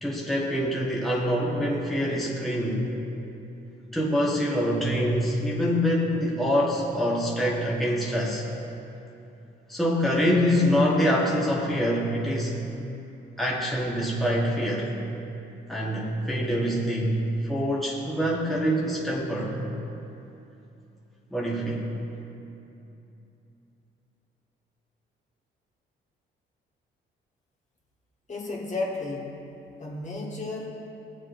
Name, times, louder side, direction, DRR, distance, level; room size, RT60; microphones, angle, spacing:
voice 1, 0.0-2.8 3.9-8.4 9.7-12.6 13.4-14.9 15.7-17.2 17.4-19.6 21.3-21.9, equal, ahead, -5 dB, 1.2 m, -25 dB
voice 2, 28.3-29.4 29.8-30.8, left 2 dB, 35° left, -3 dB, 1.6 m, -33 dB
17.0 x 7.3 x 2.6 m, 2.9 s
cardioid pair, 90°, 20 cm